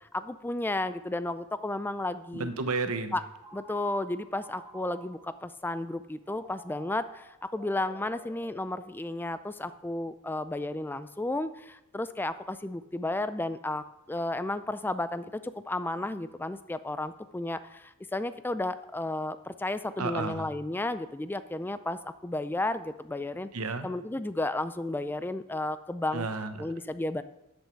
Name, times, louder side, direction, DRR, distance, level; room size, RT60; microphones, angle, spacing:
voice 1, 0.0-2.5 3.1-3.2 3.5-23.5 23.8-26.3 26.6-27.2, left 2 dB, 10° left, 12 dB, 0.3 m, -33 dB
voice 2, 2.3-3.1 20.0-20.5 23.5-23.9 26.1-26.7, right 3 dB, 85° right, 9 dB, 1.1 m, -32 dB
Telephone, 3.4-5.4 6.2-9.3, right 2 dB, 20° right, 1.3 m, -52 dB
13.0 x 8.0 x 4.6 m, 0.90 s
head